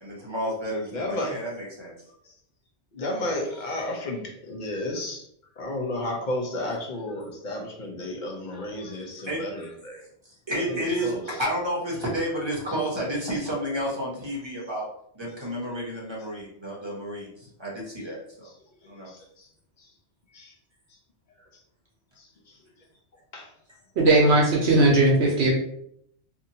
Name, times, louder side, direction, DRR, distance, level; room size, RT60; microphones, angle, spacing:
voice 1, 0.0-1.9 9.3-9.4 10.5-11.1 11.4-14.9 15.1-17.3 17.6-18.5 18.9-19.1, equal, 25° right, -5 dB, 0.8 m, -30 dB
voice 2, 0.9-1.4 2.2-2.3 2.9-5.2 5.6-10.0 10.5-11.4 18.4-18.5 19.1-19.5 19.8-19.9 20.3-20.5 22.2-22.3 23.3-23.5, left 1 dB, 50° left, 0 dB, 0.7 m, -33 dB
voice 3, 24.0-25.5, right 2 dB, 70° right, -2 dB, 0.9 m, -18 dB
2.8 x 2.6 x 2.7 m, 0.70 s
omnidirectional pair, 1.2 m